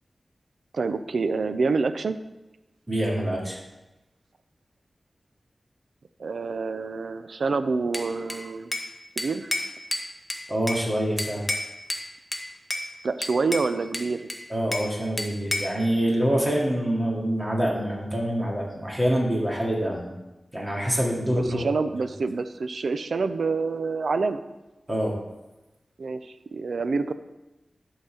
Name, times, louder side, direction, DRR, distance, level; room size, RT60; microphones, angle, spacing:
voice 1, 0.7-2.2 6.2-8.7 9.2-9.5 13.0-14.3 21.3-24.4 26.0-27.1, right 4 dB, 90° right, 10 dB, 0.5 m, -27 dB
voice 2, 2.9-3.6 10.5-11.5 14.5-20.1 20.5-21.6 24.9-25.1, equal, 20° right, -3 dB, 2.3 m, -25 dB
Bell / Glass, 7.9-8.9 9.2-10.9 11.2-12.1 12.3-12.9 13.2-14.9 15.2-15.8, left 1 dB, 15° left, 1.1 m, -31 dB
11.0 x 4.1 x 6.4 m, 1.0 s
wide cardioid pair, 90°, 0 cm